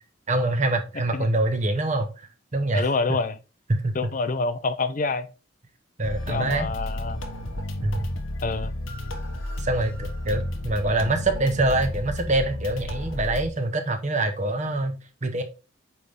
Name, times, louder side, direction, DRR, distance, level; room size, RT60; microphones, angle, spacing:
voice 1, 0.3-2.1 2.5-2.9 3.7-4.1 6.0-6.7 7.8-8.0 9.6-15.4, right 2 dB, 35° right, 0.9 m, -25 dB
voice 2, 2.7-3.4 3.9-5.3 6.3-7.2 8.4-8.7, left 3 dB, 40° left, 0.5 m, -27 dB
sound 1, 6.0-13.5, left 1 dB, 80° left, 1.2 m, -32 dB
8.4 x 3.5 x 4.1 m
head